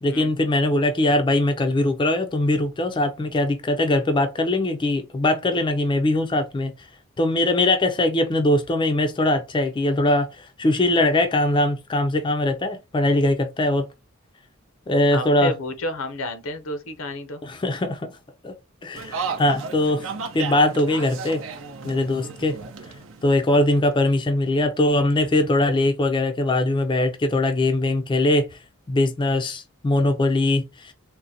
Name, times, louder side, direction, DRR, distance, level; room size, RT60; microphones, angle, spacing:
voice 1, 0.0-6.7 7.2-13.8 14.9-15.5 17.4-18.1 18.4-18.5 18.8-21.4 21.8-22.6 23.2-28.5 28.9-30.9, left 1 dB, 25° left, 0.4 m, -21 dB
voice 2, 15.1-17.4, left 1 dB, 70° left, 0.7 m, -30 dB
sound 1, 18.9-24.0, right 5 dB, 70° right, 0.6 m, -34 dB
3.8 x 2.1 x 2.7 m
head